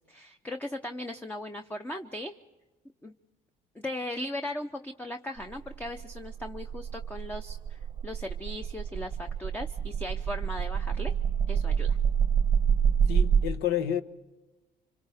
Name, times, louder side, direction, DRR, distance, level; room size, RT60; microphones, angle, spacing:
voice 1, 0.1-2.3 3.0-3.1 3.7-11.1 11.5-12.0, left 1 dB, 10° left, 0.7 m, -38 dB
sound 1, 5.4-13.5, right 7 dB, 25° right, 0.6 m, -27 dB
voice 2, 13.1-14.0, left 10 dB, 80° left, 1.1 m, -29 dB
30.0 x 25.5 x 3.5 m
cardioid pair, 110°, 17 cm